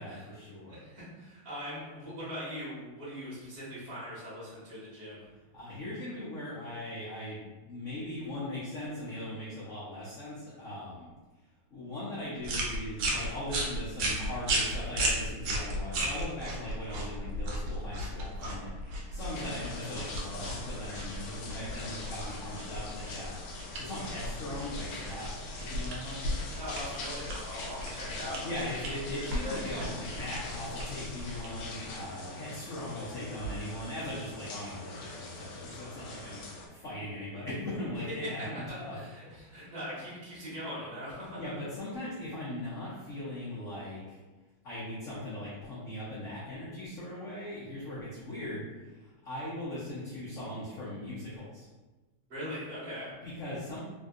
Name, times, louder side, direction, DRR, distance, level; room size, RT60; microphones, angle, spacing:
voice 1, 0.0-0.8 5.5-11.1 11.7-26.3 28.4-39.0 39.4-39.7 41.4-44.2 44.6-51.7 53.2-53.8, left 1 dB, 65° left, -9 dB, 0.7 m, -39 dB
voice 2, 0.7-5.3 26.6-28.8 29.1-29.7 38.2-38.3 38.7-41.4 52.3-53.1, equal, 30° right, -9 dB, 1.3 m, -41 dB
sound 1, 12.4-32.0, right 1 dB, 75° right, 1.4 m, -35 dB
sound 2, 19.2-36.7, left 2 dB, 85° left, 1.5 m, -43 dB
3.5 x 2.6 x 2.4 m, 1.2 s
omnidirectional pair, 2.3 m